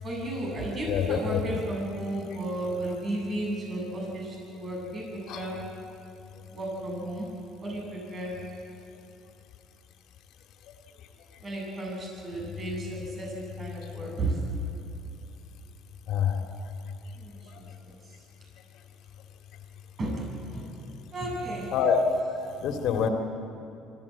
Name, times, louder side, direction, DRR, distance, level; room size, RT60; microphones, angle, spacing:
voice 1, 0.0-5.6 6.5-7.3 7.6-8.3 11.4-14.4 17.1-18.0 20.0-20.2 20.5-20.9 21.1-21.7, right 1 dB, 40° right, -2 dB, 7.6 m, -34 dB
voice 2, 0.9-1.4 5.3-5.5 16.1-16.7 17.5-17.6 21.7-22.0 22.4-23.1, left 7 dB, 65° left, 4 dB, 2.4 m, -26 dB
24.5 x 15.0 x 8.8 m, 2.7 s
supercardioid pair, 85°, 0 cm